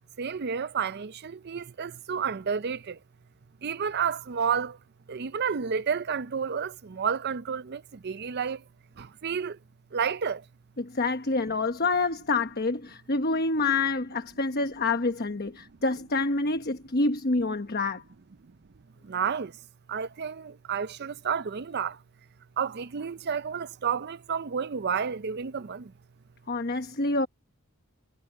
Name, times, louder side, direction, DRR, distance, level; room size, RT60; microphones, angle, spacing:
voice 1, 0.2-3.0 3.6-4.8 5.1-8.6 9.0-9.6 9.9-10.4 19.0-19.6 19.9-22.0 22.6-25.9, right 6 dB, 45° right, 0.5 m, -31 dB
voice 2, 10.8-18.0 26.5-27.3, left 3 dB, 45° left, 1.1 m, -27 dB
head